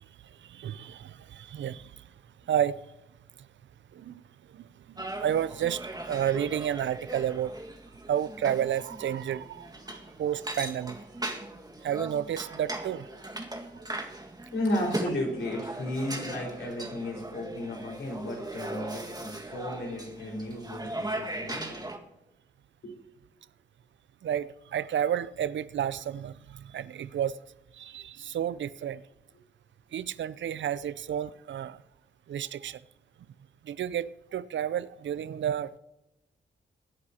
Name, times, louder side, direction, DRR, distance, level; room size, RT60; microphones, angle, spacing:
voice 1, 0.0-2.1 2.5-2.8 3.9-4.2 4.5-7.6 8.1-11.0 11.8-13.2 24.2-27.4 27.7-29.0 29.9-31.8 32.3-32.8 33.6-35.7, right 10 dB, 70° right, 0.6 m, -31 dB
sound 1, 5.0-22.0, right 1 dB, 20° right, 1.8 m, -39 dB
voice 2, 14.5-21.8 22.8-22.9, left 1 dB, 75° left, 4.9 m, -34 dB
23.5 x 9.5 x 2.9 m
supercardioid pair, 45°, 20 cm